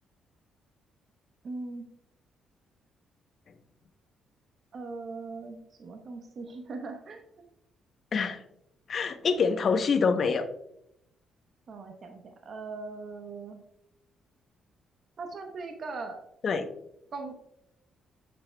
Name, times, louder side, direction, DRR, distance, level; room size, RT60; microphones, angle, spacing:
voice 1, 1.4-1.8 4.7-7.2 11.7-13.6 15.2-16.2 17.1-17.4, right 3 dB, 50° right, 4 dB, 0.9 m, -40 dB
voice 2, 8.1-8.4 8.9-10.4 16.4-16.7, left 5 dB, 50° left, 8 dB, 0.7 m, -25 dB
8.6 x 6.9 x 2.2 m, 0.78 s
cardioid pair, 90°, 0 cm